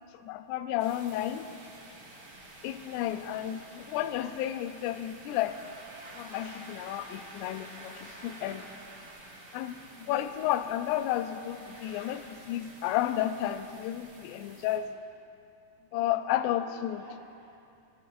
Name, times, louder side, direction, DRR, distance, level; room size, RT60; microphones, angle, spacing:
voice 1, 0.2-1.5 2.6-5.7 6.2-8.7 9.5-14.9 15.9-17.0, left 12 dB, 90° left, 10 dB, 2.7 m, -32 dB
sound 1, 0.8-14.8, right 2 dB, 45° right, 2.1 m, -49 dB
voice 2, 11.6-12.1 14.3-14.9 15.9-16.2 16.5-17.6, equal, 70° right, -5 dB, 4.7 m, -55 dB
18.5 x 16.0 x 2.5 m, 2.5 s
omnidirectional pair, 4.7 m